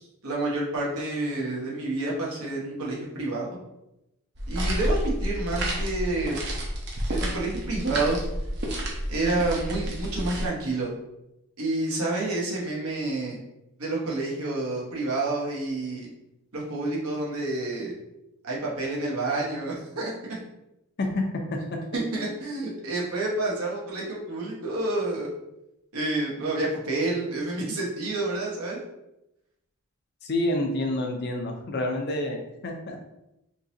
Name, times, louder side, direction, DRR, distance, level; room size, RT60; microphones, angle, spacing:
voice 1, 0.0-3.5 4.5-6.4 7.1-8.2 9.1-10.9 11.6-13.4 13.8-16.1 16.5-17.9 18.4-20.4 21.9-25.3 25.9-28.8, right 2 dB, 80° right, -4 dB, 1.1 m, -29 dB
sound 1, 4.3-10.5, equal, 50° right, 0.7 m, -30 dB
voice 2, 30.2-33.0, left 1 dB, 45° left, 3 dB, 0.5 m, -28 dB
3.8 x 2.9 x 2.7 m, 0.88 s
head